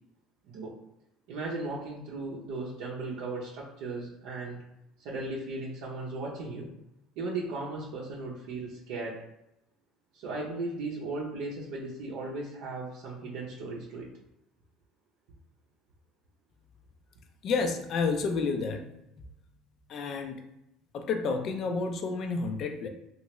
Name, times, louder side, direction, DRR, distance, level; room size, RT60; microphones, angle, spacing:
voice 1, 1.3-4.6 5.0-6.7 7.2-9.2 10.1-14.1, right 3 dB, 75° right, -5 dB, 0.6 m, -36 dB
voice 2, 17.4-18.9 19.9-20.4 20.9-22.9, left 4 dB, 45° left, 6 dB, 0.4 m, -30 dB
3.1 x 2.4 x 3.0 m, 0.85 s
cardioid pair, 140°, 0 cm